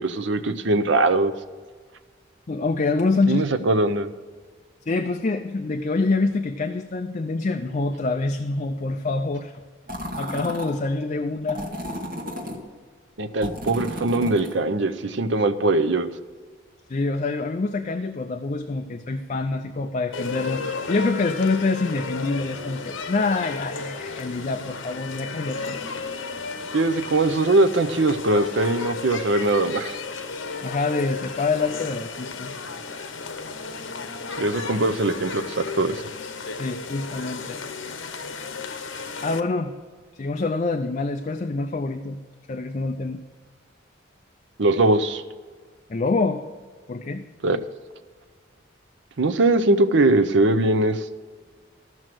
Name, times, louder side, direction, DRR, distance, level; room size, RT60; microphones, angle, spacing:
voice 1, 0.0-1.3 3.3-4.1 13.2-16.1 26.7-29.9 34.4-36.0 44.6-45.2 47.4-47.6 49.2-51.1, right 2 dB, 70° right, 8 dB, 0.7 m, -21 dB
voice 2, 2.5-3.5 4.9-9.6 10.2-11.6 16.9-25.8 30.6-32.5 36.6-37.6 39.2-39.7 40.1-42.2 42.5-43.2 45.9-46.4 46.9-47.2, left 3 dB, 40° left, 7 dB, 0.4 m, -26 dB
sound 1, 9.9-10.7 11.5-12.6 13.4-14.6, equal, 45° right, 2.1 m, -32 dB
sound 2, 20.1-39.4, left 4 dB, 85° left, 0.9 m, -34 dB
14.0 x 6.3 x 6.1 m, 1.5 s
head